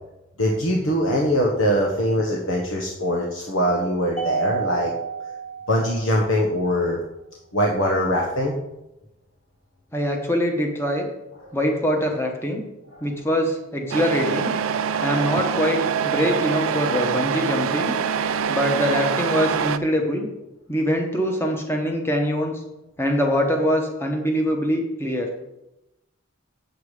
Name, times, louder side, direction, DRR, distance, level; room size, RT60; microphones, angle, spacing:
voice 1, 0.4-4.9 5.7-7.0 7.5-8.5 11.4-11.5 13.0-13.1, equal, 80° left, -2 dB, 1.2 m, -22 dB
Mallet percussion, 4.2-6.6, right 7 dB, 30° left, 1.2 m, -31 dB
voice 2, 9.9-11.1 11.5-12.6 13.0-14.5 15.0-18.0 18.5-20.3 20.7-22.6 23.0-25.3, equal, 10° left, 2 dB, 1.1 m, -23 dB
Truck, 13.9-19.8, right 7 dB, 80° right, 0.5 m, -24 dB
8.2 x 7.0 x 4.9 m, 0.93 s
head